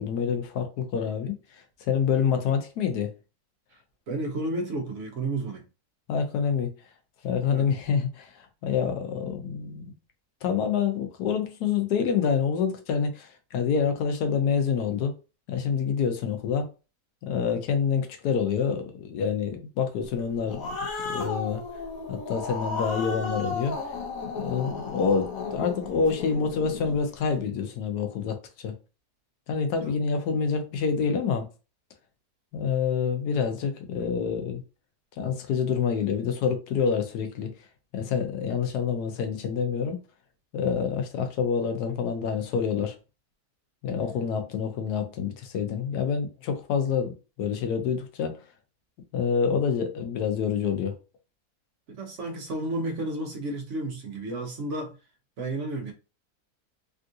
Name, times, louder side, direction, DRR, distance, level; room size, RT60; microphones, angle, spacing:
voice 1, 0.0-3.1 6.1-6.7 7.2-9.9 10.4-15.1 15.5-16.7 17.2-20.8 21.0-21.6 22.1-23.7 24.4-28.7 29.5-31.5 32.5-34.6 35.2-37.5 37.9-40.0 40.5-43.0 43.8-48.4 49.1-50.9, left 6 dB, 85° left, 1.2 m, -27 dB
voice 2, 4.1-5.6 7.5-7.7 29.8-29.9 51.9-55.0 55.4-55.9, right 2 dB, 55° right, 1.0 m, -32 dB
Growling, 20.2-27.0, left 4 dB, 65° left, 1.1 m, -34 dB
3.5 x 2.4 x 2.7 m
omnidirectional pair, 1.6 m